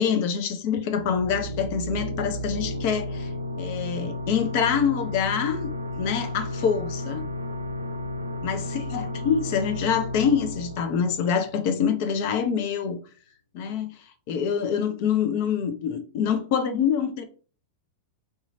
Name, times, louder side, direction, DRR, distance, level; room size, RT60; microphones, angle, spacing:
voice 1, 0.0-3.3 3.6-7.2 8.4-13.0 13.5-17.2, left 7 dB, 50° left, 0.6 m, -26 dB
sound 1, 0.8-12.2, left 1 dB, 80° right, 0.4 m, -33 dB
3.6 x 2.8 x 2.7 m
figure-of-eight pair, 90°, 0 cm